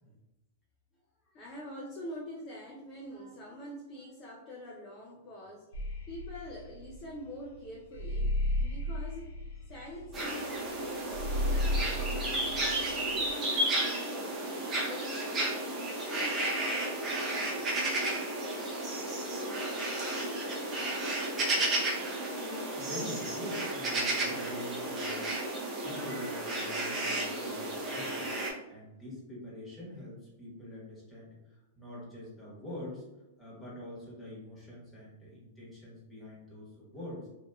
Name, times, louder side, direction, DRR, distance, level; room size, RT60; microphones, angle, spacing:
voice 1, 1.3-5.7 6.1-9.3 9.5-12.4 12.8-15.7 16.0-17.6, equal, 25° left, -4 dB, 0.5 m, -45 dB
sound 1, 5.7-13.3, left 1 dB, 75° left, 0.7 m, -33 dB
sound 2, 10.1-28.5, right 1 dB, 25° right, 0.6 m, -33 dB
voice 2, 22.2-25.2 25.8-33.0 33.4-37.3, left 1 dB, 10° left, -7 dB, 1.3 m, -45 dB
2.6 x 2.6 x 2.2 m, 0.98 s
hypercardioid pair, 125°, 0 cm